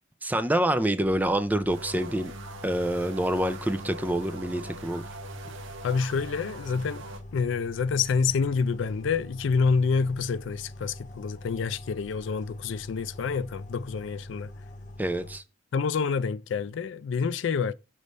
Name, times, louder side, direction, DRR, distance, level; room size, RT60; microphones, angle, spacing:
voice 1, 0.2-2.3 2.6-5.0 15.0-15.4, right 1 dB, 10° right, 0.4 m, -26 dB
sound 1, 1.0-15.4, left 1 dB, 40° left, 0.7 m, -44 dB
sound 2, 1.7-7.2, right 3 dB, 75° right, 1.1 m, -43 dB
voice 2, 5.8-7.0 7.3-14.5 15.7-17.7, left 5 dB, 65° left, 0.4 m, -27 dB
6.6 x 3.2 x 5.2 m
head